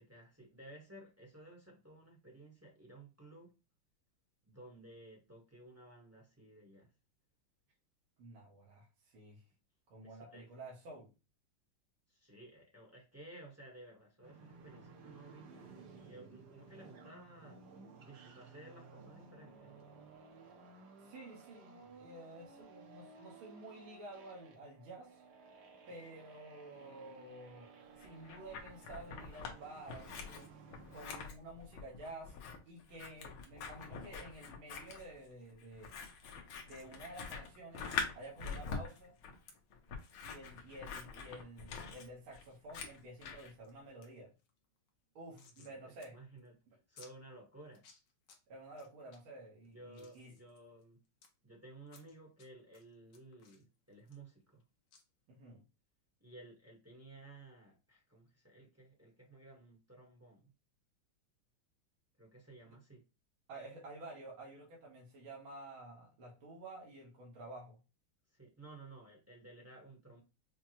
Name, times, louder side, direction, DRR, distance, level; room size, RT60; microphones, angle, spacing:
voice 1, 0.0-3.5 4.4-6.9 10.0-10.5 12.1-17.6 18.0-19.7 45.3-46.5 46.9-47.8 49.6-51.0 51.4-54.6 56.2-60.5 62.2-63.0 68.3-70.2, right 2 dB, 10° right, -2 dB, 0.7 m, -56 dB
voice 2, 8.2-8.9 9.1-9.4 9.9-11.1 21.0-25.2 25.9-27.7 28.0-30.5 30.9-32.3 32.7-35.9 36.6-39.2 40.2-44.3 45.2-46.2 48.5-50.3 55.3-55.6 62.7-62.8 63.5-67.8, right 2 dB, 80° right, -3 dB, 2.0 m, -51 dB
sound 1, 14.2-31.1, right 4 dB, 60° right, 1.2 m, -57 dB
Scissors, 28.0-29.6 29.9-43.5, left 5 dB, 85° left, 1.6 m, -45 dB
sound 2, 36.6-36.9 38.0-38.1 38.8-39.0 39.5-39.6 40.0-40.2 40.6-40.7 40.9-41.0 41.7-41.9 42.4-42.9 43.3-43.7 44.0-44.1 44.4-45.7 46.0-46.1 46.4-46.5 47.0-47.1 47.7-48.4 48.7-49.2 49.6-51.3 51.9-52.5 52.7-54.6 54.9-55.0, left 5 dB, 65° left, 1.4 m, -61 dB
5.7 x 2.1 x 2.9 m, 0.29 s
omnidirectional pair, 2.3 m